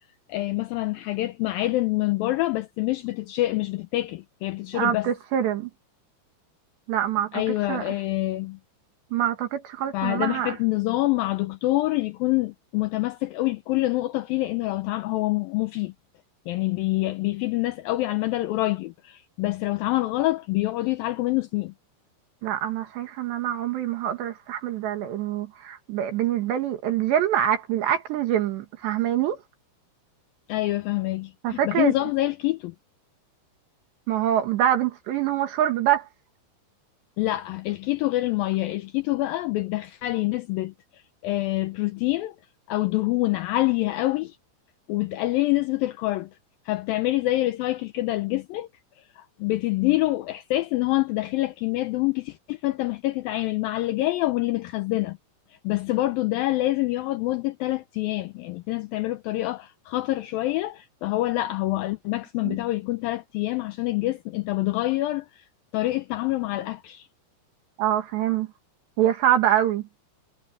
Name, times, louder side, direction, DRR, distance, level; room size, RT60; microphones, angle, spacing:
voice 1, 0.3-5.1 7.3-8.6 9.9-15.9 16.5-21.7 30.5-32.7 37.2-42.4 42.7-44.4 44.9-46.3 46.7-48.7 49.0-55.2 55.6-65.5 65.7-67.1, left 18 dB, 80° left, 2.1 m, -26 dB
voice 2, 4.7-5.7 6.9-7.4 7.7-7.9 9.1-10.6 22.4-29.4 31.4-31.9 34.1-36.1 62.5-62.6 67.8-68.5 69.0-69.8, right 11 dB, 75° right, 4.0 m, -25 dB
omnidirectional pair, 5.0 m